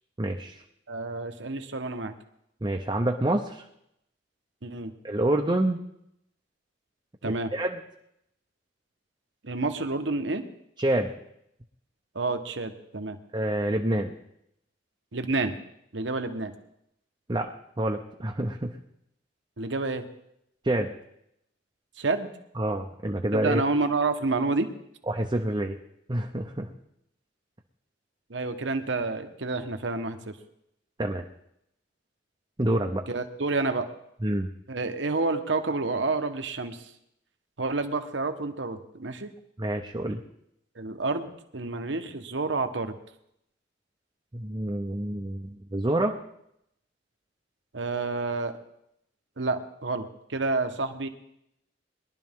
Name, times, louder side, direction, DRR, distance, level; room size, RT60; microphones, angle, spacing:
voice 1, 0.2-0.6 2.6-3.6 5.0-5.8 7.2-7.8 10.8-11.1 13.3-14.1 17.3-17.5 17.8-18.8 20.6-20.9 22.6-23.6 25.1-25.8 26.1-26.7 31.0-31.2 32.6-33.0 34.2-34.5 39.6-40.2 44.3-46.2, right 1 dB, 25° right, 1 dB, 0.7 m, -27 dB
voice 2, 0.9-2.1 4.6-4.9 7.2-7.5 9.4-10.5 12.1-13.2 15.1-15.5 15.9-16.5 19.6-20.1 22.0-22.3 23.3-24.7 28.3-30.4 33.1-33.9 34.7-36.9 37.6-39.3 40.7-41.3 41.5-42.9 47.7-48.6 49.4-51.1, right 3 dB, 75° right, 7 dB, 1.2 m, -29 dB
21.5 x 11.5 x 3.7 m, 0.78 s
head